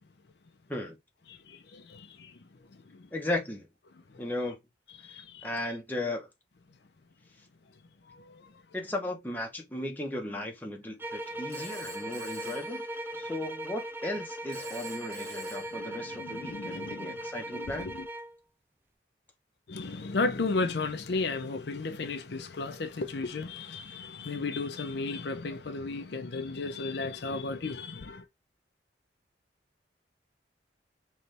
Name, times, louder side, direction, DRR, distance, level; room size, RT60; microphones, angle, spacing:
voice 1, 1.3-2.4 2.9-3.1 4.1-4.3 5.0-5.5 8.1-8.5 11.6-11.7 15.7-17.2 17.5-18.1 19.7-28.2, left 3 dB, 65° left, 0.6 m, -34 dB
voice 2, 3.1-3.7 4.2-4.6 5.1-6.3 8.7-12.9 13.1-17.9, left 1 dB, 10° left, 0.9 m, -36 dB
sound 1, 11.0-18.4, right 1 dB, 10° right, 0.4 m, -39 dB
Telephone, 11.5-13.5 14.5-16.4, right 2 dB, 60° right, 2.2 m, -47 dB
4.1 x 3.2 x 3.3 m
head